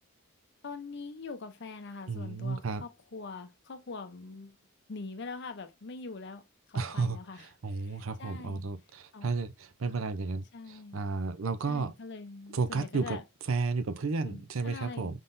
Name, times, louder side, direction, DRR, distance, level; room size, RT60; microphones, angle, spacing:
voice 1, 0.6-4.6 4.9-8.7 9.1-9.3 9.9-10.0 10.5-11.0 11.7-13.2 14.2-15.2, left 4 dB, 55° left, 0.6 m, -43 dB
voice 2, 2.1-2.8 6.7-11.9 12.5-13.2 13.5-15.2, right 4 dB, 75° right, 0.6 m, -33 dB
5.4 x 3.8 x 2.6 m
head